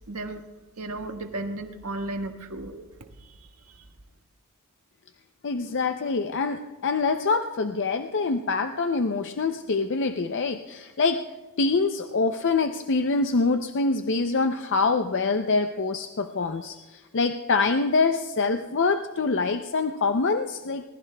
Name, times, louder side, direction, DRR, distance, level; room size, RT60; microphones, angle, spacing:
voice 1, 0.1-0.4 0.8-3.9, right 2 dB, 85° right, 4 dB, 1.5 m, -35 dB
voice 2, 5.4-11.2 11.6-20.8, left 4 dB, 55° left, 7 dB, 0.6 m, -25 dB
25.0 x 20.0 x 2.3 m, 1.2 s
head